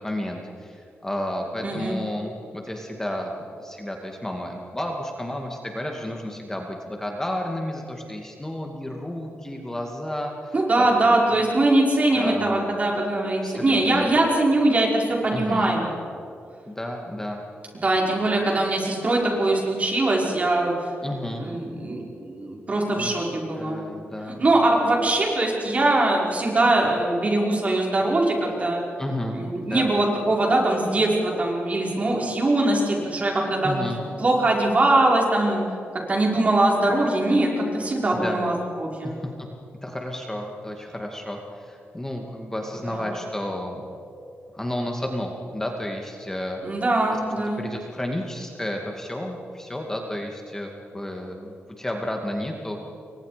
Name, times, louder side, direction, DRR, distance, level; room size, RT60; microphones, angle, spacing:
voice 1, 0.0-3.3 3.6-10.9 12.1-12.5 13.4-14.1 15.3-15.7 16.7-17.4 21.0-21.4 23.0-23.1 23.6-24.4 29.0-29.4 29.6-29.9 33.6-34.0 38.1-38.4 39.0-39.5 39.8-43.9 44.5-46.6 47.6-52.9, left 1 dB, 10° left, 1 dB, 2.3 m, -32 dB
voice 2, 1.6-1.9 10.5-15.9 17.8-20.9 21.4-23.8 24.2-28.8 29.3-33.8 34.2-35.6 36.1-39.2 42.8-43.0 46.6-47.6, right 2 dB, 35° right, -1 dB, 5.4 m, -22 dB
29.5 x 23.5 x 5.2 m, 2.7 s
wide cardioid pair, 115°, 4 cm